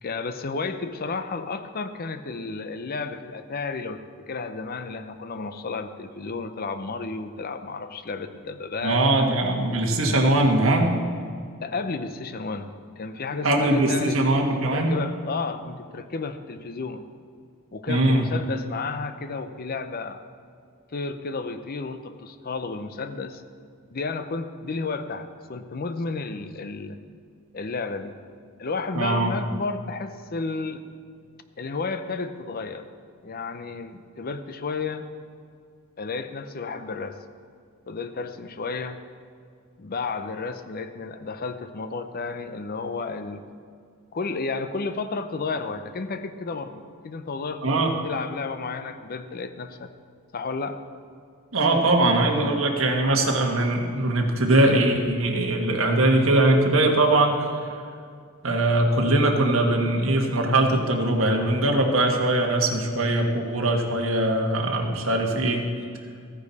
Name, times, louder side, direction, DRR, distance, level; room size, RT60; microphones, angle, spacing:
voice 1, 0.0-9.4 11.6-17.1 17.7-20.2 20.9-23.4 23.9-27.0 27.5-28.2 28.6-30.8 31.6-32.9 33.2-35.1 36.0-37.2 37.9-39.0 39.8-43.4 44.1-47.7 48.0-49.9 50.3-50.8, left 4 dB, 45° left, 10 dB, 0.6 m, -32 dB
voice 2, 8.8-10.9 13.4-14.9 17.9-18.3 28.9-29.3 47.6-47.9 51.5-57.5 58.4-65.7, right 2 dB, 70° right, 1 dB, 1.4 m, -21 dB
14.0 x 9.9 x 4.1 m, 2.2 s
head